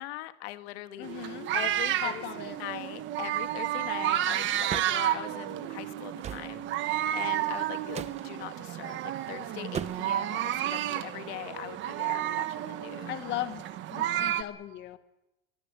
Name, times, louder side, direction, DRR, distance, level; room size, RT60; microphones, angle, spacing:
voice 1, 0.0-2.2 2.6-13.4, left 16 dB, 80° left, 10 dB, 1.9 m, -41 dB
voice 2, 1.0-1.5 2.0-2.6 13.1-13.6 13.9-15.0, left 14 dB, 35° left, 11 dB, 1.1 m, -37 dB
sound 1, 1.0-14.4, right 12 dB, 40° right, 1.3 m, -31 dB
sound 2, 4.7-5.0 6.2-6.5 7.9-8.2 9.7-10.2, right 8 dB, 20° right, 0.9 m, -37 dB
24.0 x 20.5 x 8.2 m, 0.96 s
cardioid pair, 165°, 31 cm